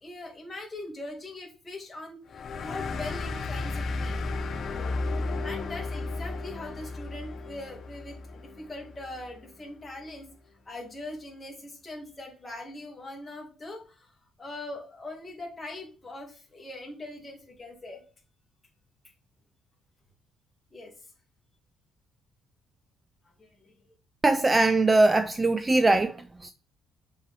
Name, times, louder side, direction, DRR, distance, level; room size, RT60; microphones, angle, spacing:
voice 1, 0.0-4.2 4.7-5.0 5.4-10.3 10.7-18.0 20.7-20.9 23.4-23.9, left 2 dB, 20° left, 2.3 m, -41 dB
sound 1, 2.3-9.4, left 3 dB, 50° left, 0.7 m, -34 dB
voice 2, 24.2-26.2 26.4-26.5, right 2 dB, 20° right, 0.3 m, -21 dB
6.6 x 4.3 x 3.5 m
cardioid pair, 125°, 0 cm